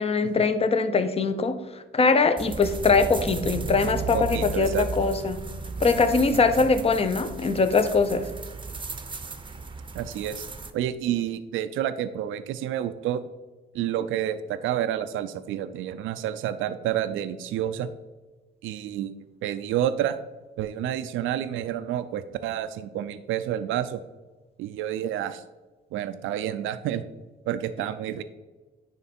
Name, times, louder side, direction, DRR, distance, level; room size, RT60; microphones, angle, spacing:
voice 1, 0.0-5.4 5.8-8.3, left 4 dB, 30° left, 11 dB, 0.7 m, -22 dB
sound 1, 2.4-10.7, right 4 dB, 25° right, 0.7 m, -35 dB
voice 2, 4.1-4.9 6.3-6.5 9.9-10.4 10.7-13.2 13.7-17.9 18.6-19.2 19.4-20.2 20.6-24.0 24.6-25.4 25.9-27.0 27.5-28.2, right 11 dB, 85° right, 12 dB, 0.4 m, -29 dB
9.7 x 3.3 x 4.2 m, 1.2 s
cardioid pair, 90°, 20 cm